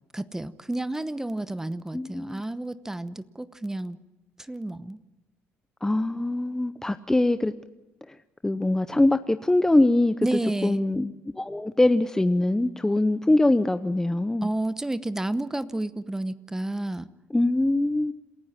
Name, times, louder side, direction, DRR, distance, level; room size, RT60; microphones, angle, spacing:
voice 1, 0.1-4.0 4.4-5.0 10.2-10.8 14.4-17.1, right 1 dB, 10° right, 15 dB, 0.9 m, -30 dB
voice 2, 1.9-2.4 5.8-7.5 8.1-8.2 8.4-14.5 17.3-18.1, left 2 dB, 10° left, 11 dB, 0.8 m, -23 dB
27.5 x 15.0 x 7.4 m, 1.1 s
supercardioid pair, 80°, 5 cm